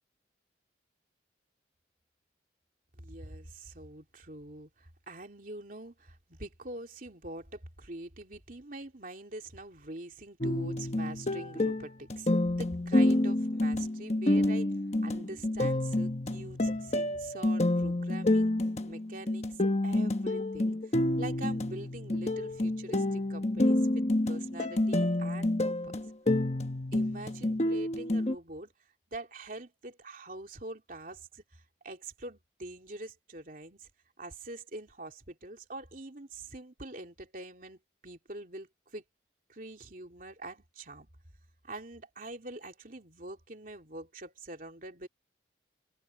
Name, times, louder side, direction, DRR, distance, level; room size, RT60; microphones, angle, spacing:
voice 1, 2.9-12.3 12.6-14.8 15.0-18.5 18.9-26.0 26.9-28.7 29.1-33.9 34.2-39.0 39.5-41.1 41.6-45.1, right 2 dB, 45° right, 3.1 m, -44 dB
sound 1, 10.4-28.3, left 1 dB, 35° left, 1.1 m, -29 dB
head